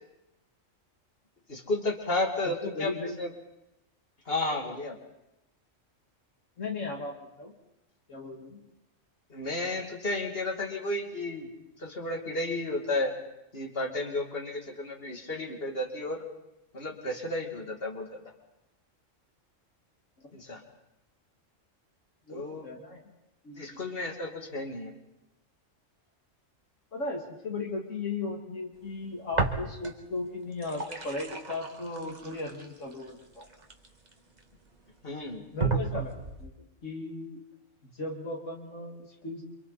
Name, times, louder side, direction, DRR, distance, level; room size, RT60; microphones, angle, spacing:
voice 1, 1.5-3.3 4.3-5.0 9.3-11.5 11.8-13.1 13.5-16.2 16.7-18.2 20.3-20.6 22.3-22.7 23.6-25.0 35.0-35.4, left 2 dB, 50° left, 1 dB, 3.0 m, -32 dB
voice 2, 2.4-3.2 6.6-7.5 8.1-8.6 22.3-23.0 23.4-23.8 26.9-33.5 35.5-36.1 36.4-36.5 36.8-37.4 37.9-39.4, left 3 dB, 75° left, 1 dB, 2.8 m, -36 dB
sound 1, 29.3-30.1 30.4-34.4 35.0-35.1 35.6-36.5, right 4 dB, 35° right, 1.9 m, -33 dB
29.5 x 26.0 x 4.2 m, 0.88 s
omnidirectional pair, 1.3 m